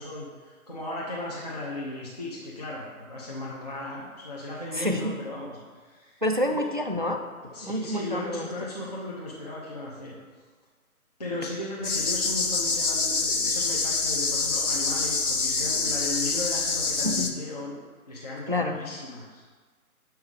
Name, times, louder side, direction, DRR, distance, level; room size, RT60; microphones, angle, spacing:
voice 1, 0.0-6.2 6.5-6.6 7.5-10.1 11.2-17.7 18.1-19.4, left 2 dB, 30° left, -6 dB, 0.7 m, -36 dB
voice 2, 4.7-5.2 6.2-7.2 7.6-8.5 17.0-17.3 18.5-18.8, left 1 dB, 35° right, 4 dB, 0.4 m, -27 dB
sound 1, 11.8-17.3, left 4 dB, 75° left, 0.9 m, -26 dB
7.4 x 4.6 x 5.1 m, 1.5 s
figure-of-eight pair, 150°, 44 cm